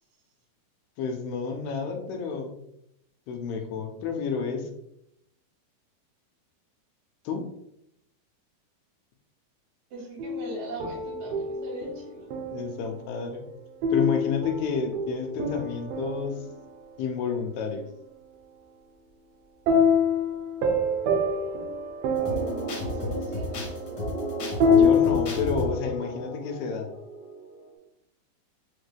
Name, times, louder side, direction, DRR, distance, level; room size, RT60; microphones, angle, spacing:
voice 1, 1.0-2.6 3.3-4.7 7.3-7.4 12.5-13.4 13.9-16.4 17.0-17.9 24.7-26.9, left 5 dB, 85° left, 4 dB, 2.3 m, -30 dB
voice 2, 9.9-12.3 22.9-23.8, right 2 dB, 70° right, -4 dB, 2.8 m, -39 dB
sound 1, 10.2-12.9 13.8-17.2 19.7-25.7, left 3 dB, 90° right, 1.9 m, -26 dB
sound 2, 22.1-27.7, left 1 dB, 65° left, 1.6 m, -33 dB
5.8 x 2.2 x 3.3 m, 0.79 s
omnidirectional pair, 4.4 m